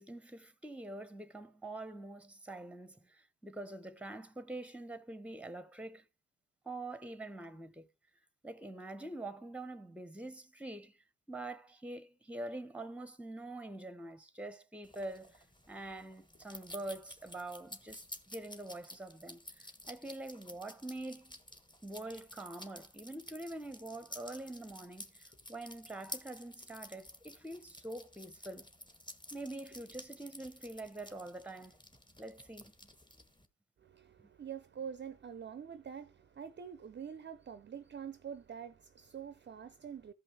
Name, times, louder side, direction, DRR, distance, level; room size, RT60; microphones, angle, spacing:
voice 1, 0.0-6.0 6.6-7.9 8.4-11.0 11.3-21.3 21.8-28.7 29.3-31.8 32.2-32.7 34.2-34.3, right 2 dB, 5° right, 0.9 m, -45 dB
sound 1, 14.8-33.5, left 1 dB, 15° left, 1.4 m, -52 dB
voice 2, 33.8-40.1, right 7 dB, 35° right, 0.6 m, -46 dB
14.5 x 5.4 x 3.4 m
supercardioid pair, 55°, 33 cm